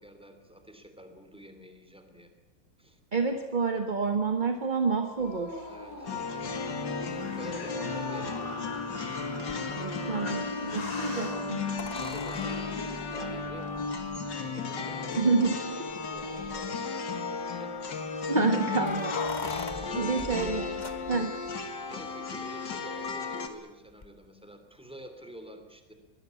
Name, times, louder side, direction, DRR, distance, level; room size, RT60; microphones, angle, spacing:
voice 1, 0.0-2.3 2.8-3.0 5.7-6.7 7.3-8.9 11.7-13.7 14.0-18.0 19.8-25.9, right 1 dB, 5° right, 7 dB, 2.9 m, -48 dB
voice 2, 3.1-5.7 9.7-11.6 15.1-15.9 18.3-19.1 19.4-20.8 21.1-21.3, right 4 dB, 30° right, 7 dB, 1.4 m, -29 dB
sound 1, 5.2-13.8, left 1 dB, 50° left, 4.5 m, -43 dB
sound 2, 6.1-23.5, left 4 dB, 70° left, 2.6 m, -34 dB
sound 3, 9.5-9.6 11.8-14.2 15.1-15.2 15.5-15.6 16.2-16.7 18.4-21.5 24.0-24.1, left 4 dB, 25° left, 1.3 m, -39 dB
23.5 x 19.5 x 8.4 m, 1.1 s
omnidirectional pair, 2.0 m